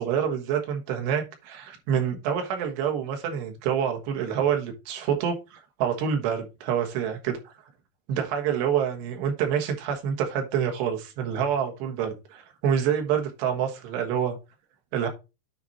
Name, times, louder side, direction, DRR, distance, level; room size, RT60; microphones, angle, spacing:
voice 1, 0.0-7.5 8.1-14.4 14.9-15.1, right 8 dB, 85° right, 3.7 m, -27 dB
9.4 x 4.2 x 4.2 m
omnidirectional pair, 4.8 m